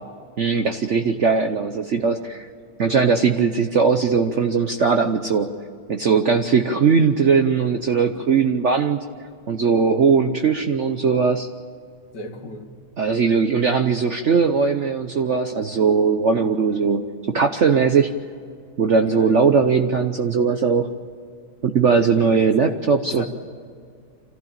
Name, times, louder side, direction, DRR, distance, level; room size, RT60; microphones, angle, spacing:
voice 1, 0.4-2.5 2.8-5.5 5.9-9.0 9.5-11.5 13.0-18.1 18.8-20.9 21.6-23.3, right 5 dB, 50° right, 6 dB, 0.9 m, -19 dB
voice 2, 12.1-12.7 19.1-19.6 22.6-22.8 23.1-23.3, left 2 dB, 65° left, 3 dB, 2.5 m, -36 dB
26.0 x 15.0 x 8.8 m, 2.2 s
omnidirectional pair, 2.0 m